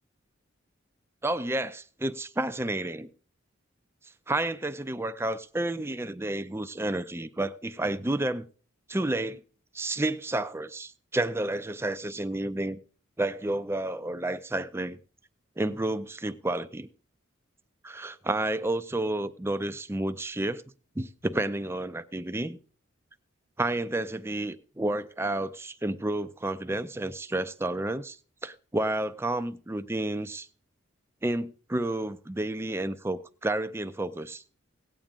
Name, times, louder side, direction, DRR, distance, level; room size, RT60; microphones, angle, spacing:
voice 1, 1.2-3.1 4.3-8.4 8.9-9.4 9.7-12.8 13.2-15.0 15.6-16.9 17.8-20.6 21.0-22.6 23.6-30.5 31.2-34.4, right 1 dB, 10° right, 0.5 m, -30 dB
17.0 x 8.8 x 3.7 m
head